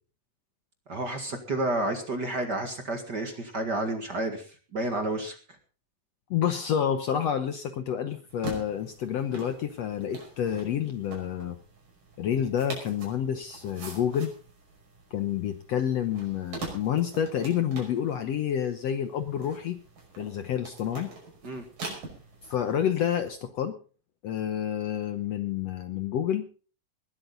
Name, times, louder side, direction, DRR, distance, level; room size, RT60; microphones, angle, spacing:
voice 1, 0.9-5.6 21.4-21.6, right 2 dB, 40° right, 5 dB, 2.0 m, -31 dB
voice 2, 6.3-11.6 12.2-14.3 15.1-19.8 20.2-21.1 22.4-23.8 24.2-26.5, left 9 dB, 65° left, 8 dB, 1.7 m, -29 dB
sound 1, 8.3-23.3, right 3 dB, 85° right, 7.3 m, -44 dB
20.0 x 13.0 x 3.9 m, 0.40 s
omnidirectional pair, 3.8 m